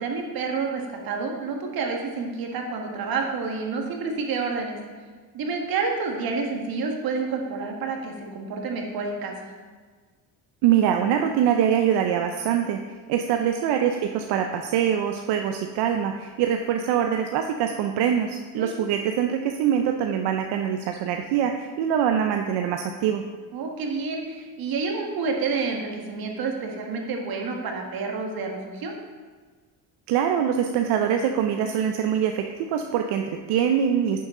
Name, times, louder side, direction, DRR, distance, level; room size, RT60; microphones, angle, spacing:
voice 1, 0.0-4.8 5.3-9.5 13.1-13.4 18.6-18.7 23.5-28.9, right 4 dB, 65° right, 2 dB, 1.6 m, -29 dB
voice 2, 10.6-12.8 13.1-23.2 30.1-34.3, right 9 dB, 85° right, 5 dB, 0.6 m, -24 dB
10.0 x 6.9 x 3.7 m, 1.5 s
cardioid pair, 120°, 39 cm